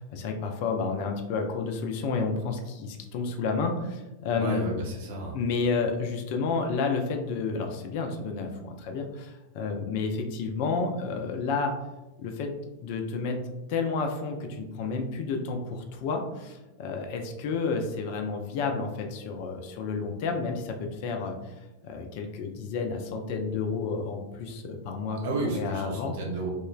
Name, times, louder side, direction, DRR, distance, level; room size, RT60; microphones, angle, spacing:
voice 1, 0.0-4.7 5.3-11.7 12.2-12.5 12.8-13.4 13.7-21.5 21.8-25.2 25.5-26.1, left 4 dB, 50° left, 4 dB, 0.3 m, -30 dB
voice 2, 4.4-5.4 25.2-26.5, right 2 dB, 55° right, -1 dB, 0.7 m, -32 dB
2.9 x 2.1 x 2.3 m, 1.0 s
figure-of-eight pair, 90°, 0 cm